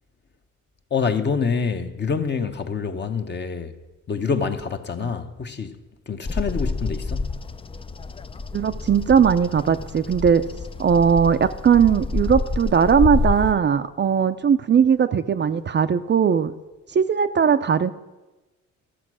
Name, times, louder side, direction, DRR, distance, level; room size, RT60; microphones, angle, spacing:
voice 1, 0.9-3.7 4.1-5.8 6.1-7.3, left 5 dB, 35° left, 1.0 m, -26 dB
Bird vocalization bird call bird song, 6.2-13.5, left 3 dB, 20° left, 0.4 m, -28 dB
voice 2, 8.5-10.4 10.8-16.5 16.9-17.9, right 7 dB, 35° right, 0.5 m, -19 dB
13.5 x 7.5 x 6.2 m
cardioid pair, 90°, 30 cm